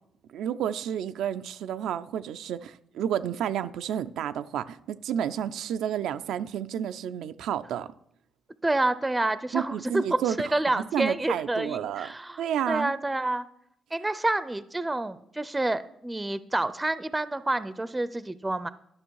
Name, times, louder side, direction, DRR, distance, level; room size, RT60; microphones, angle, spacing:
voice 1, 0.3-7.9 9.5-10.4 10.7-12.1 12.4-12.9, right 9 dB, 85° right, 0.4 m, -30 dB
voice 2, 8.6-13.5 13.9-18.7, right 2 dB, 15° right, 0.5 m, -28 dB
11.5 x 6.2 x 4.6 m
cardioid pair, 70°, 0 cm